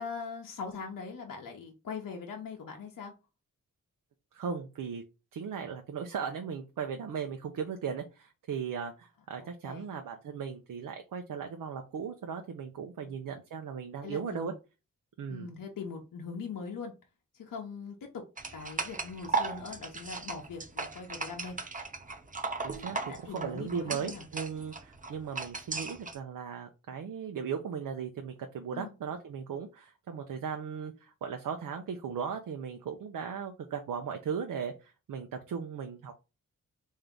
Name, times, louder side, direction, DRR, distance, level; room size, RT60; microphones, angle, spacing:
voice 1, 0.0-3.1 9.4-9.9 13.1-13.2 14.0-14.5 15.3-16.9 17.3-18.2 18.5-21.6 22.8-24.3 28.7-28.9, left 5 dB, 75° left, 1 dB, 0.8 m, -41 dB
voice 2, 4.3-5.0 5.3-14.5 15.2-15.5 22.6-23.0 23.3-36.2, right 6 dB, 75° right, 5 dB, 0.6 m, -37 dB
sound 1, 18.4-26.2, right 4 dB, 25° right, 0.7 m, -37 dB
3.4 x 2.7 x 3.7 m, 0.28 s
cardioid pair, 55°, 33 cm